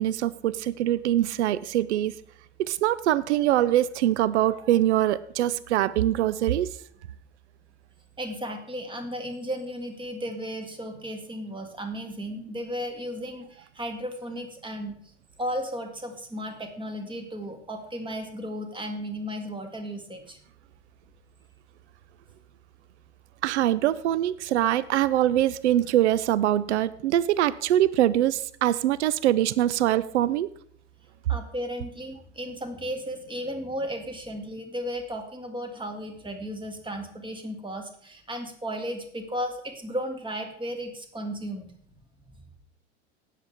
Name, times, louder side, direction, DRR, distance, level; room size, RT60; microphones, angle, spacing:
voice 1, 0.0-2.2 2.6-6.7 23.4-30.5, right 12 dB, 80° right, 19 dB, 0.5 m, -23 dB
voice 2, 8.2-14.9 15.4-20.4 31.3-41.7, equal, 15° right, 5 dB, 2.1 m, -34 dB
18.5 x 7.5 x 3.5 m, 0.63 s
hypercardioid pair, 80°, 34 cm